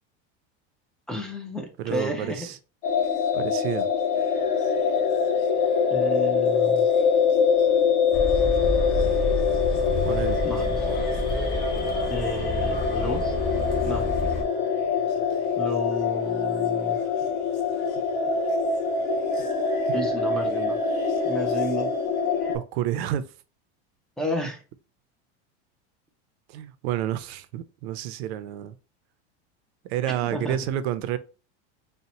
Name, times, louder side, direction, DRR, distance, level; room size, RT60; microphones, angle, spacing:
voice 1, 1.1-2.5 5.9-6.9 10.4-10.8 12.1-13.3 13.8-14.1 15.6-17.0 19.9-20.8 21.2-21.9 24.2-24.6 30.2-30.6, equal, ahead, 0.3 m, -32 dB
voice 2, 1.8-2.6 3.3-3.9 10.0-10.4 22.5-23.3 26.5-28.7 29.8-31.2, right 12 dB, 70° right, 0.6 m, -29 dB
sound 1, 2.8-22.6, left 5 dB, 65° left, 1.3 m, -24 dB
sound 2, 8.1-14.4, left 2 dB, 25° left, 1.3 m, -29 dB
4.2 x 2.1 x 4.0 m
supercardioid pair, 160°, 33 cm